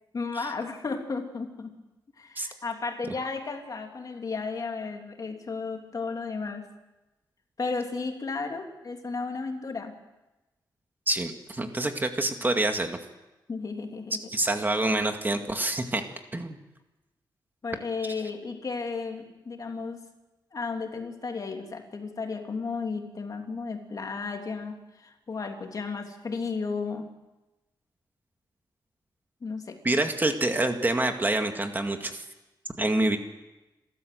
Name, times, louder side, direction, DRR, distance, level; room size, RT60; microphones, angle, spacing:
voice 1, 0.1-1.7 2.2-6.7 7.6-9.9 13.5-14.3 17.6-20.1 20.5-27.1 29.4-29.8, left 4 dB, 45° left, 3 dB, 3.1 m, -34 dB
voice 2, 11.1-13.0 14.3-16.0 16.3-16.6 29.8-32.2 32.8-33.2, right 2 dB, 25° right, 5 dB, 2.0 m, -26 dB
28.5 x 13.5 x 7.9 m, 1.0 s
cardioid pair, 90°, 8 cm